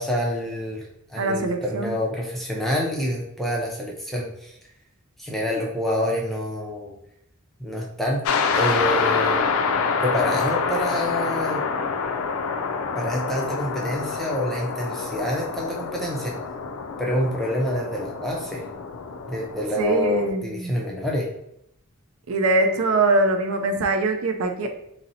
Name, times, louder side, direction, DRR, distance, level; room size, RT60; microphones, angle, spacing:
voice 1, 0.0-4.6 5.2-6.9 7.6-8.2 8.5-9.5 10.0-11.6 12.9-16.4 17.0-18.6 19.3-21.3, equal, ahead, -2 dB, 0.5 m, -27 dB
voice 2, 1.2-1.9 19.8-20.7 22.3-24.7, right 2 dB, 70° right, 6 dB, 0.4 m, -22 dB
sound 1, 8.3-20.3, left 5 dB, 70° left, 0.4 m, -27 dB
3.9 x 2.0 x 2.6 m, 0.75 s
head